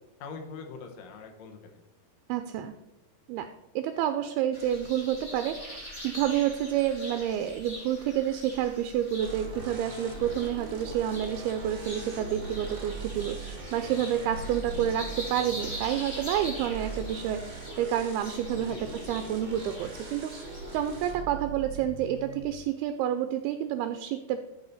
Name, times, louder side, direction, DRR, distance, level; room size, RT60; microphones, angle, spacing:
voice 1, 0.2-1.8 18.5-19.0, left 4 dB, 75° left, 3 dB, 1.6 m, -43 dB
voice 2, 2.3-2.7 3.3-3.5 3.8-24.4, right 10 dB, 85° right, 9 dB, 2.2 m, -29 dB
sound 1, 4.5-21.2, left 1 dB, 20° left, 1.2 m, -43 dB
sound 2, 9.2-22.4, right 3 dB, 65° right, 1.1 m, -40 dB
12.5 x 5.0 x 4.0 m, 0.97 s
omnidirectional pair, 4.9 m